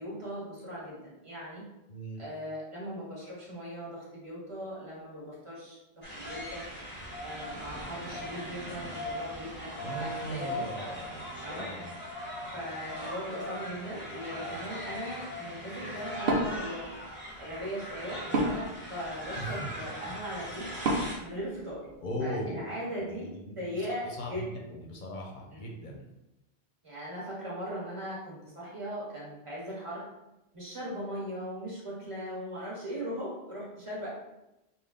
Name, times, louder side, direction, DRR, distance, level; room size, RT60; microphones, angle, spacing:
voice 1, 0.0-1.7 2.2-6.6 7.2-10.6 11.4-12.0 12.5-17.0 17.4-20.7 21.2-21.9 22.2-23.3 23.6-24.4 26.8-30.0 30.5-34.1, equal, 30° right, -6 dB, 1.3 m, -39 dB
voice 2, 1.9-2.2 9.8-11.9 19.4-19.7 22.0-22.7 23.1-26.1, equal, 55° left, -1 dB, 0.7 m, -39 dB
sound 1, 6.0-21.1, equal, 10° left, 0.8 m, -40 dB
Wood, 16.2-22.2, right 1 dB, 70° right, 0.8 m, -35 dB
3.5 x 2.3 x 3.6 m, 0.93 s
omnidirectional pair, 1.0 m